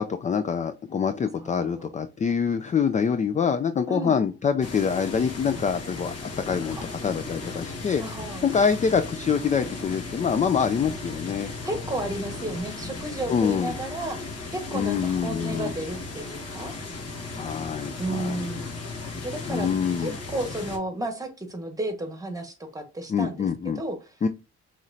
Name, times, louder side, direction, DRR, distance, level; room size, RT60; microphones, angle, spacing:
voice 1, 0.0-8.0 8.4-11.5 13.3-13.7 14.7-15.7 17.3-18.5 19.5-20.2 23.1-23.8 24.2-24.3, left 6 dB, 25° left, 0.3 m, -25 dB
voice 2, 1.4-2.0 3.9-4.2 6.7-6.8 8.0-8.5 11.6-16.7 18.0-18.7 19.0-19.7 20.0-24.0, right 1 dB, 10° right, 1.3 m, -33 dB
sound 1, 4.6-20.8, left 3 dB, 55° left, 1.6 m, -36 dB
5.7 x 3.1 x 2.6 m
cardioid pair, 90°, 30 cm